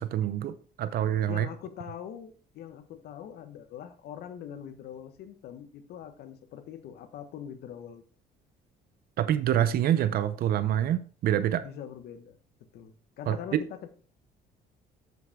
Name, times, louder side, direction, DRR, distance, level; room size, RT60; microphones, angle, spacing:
voice 1, 0.0-1.5 9.2-11.6 13.3-13.6, right 11 dB, 65° right, 13 dB, 0.7 m, -26 dB
voice 2, 1.3-8.0 11.6-12.4 12.7-13.9, left 9 dB, 70° left, 10 dB, 1.3 m, -43 dB
8.1 x 8.0 x 3.6 m, 0.39 s
cardioid pair, 110°, 17 cm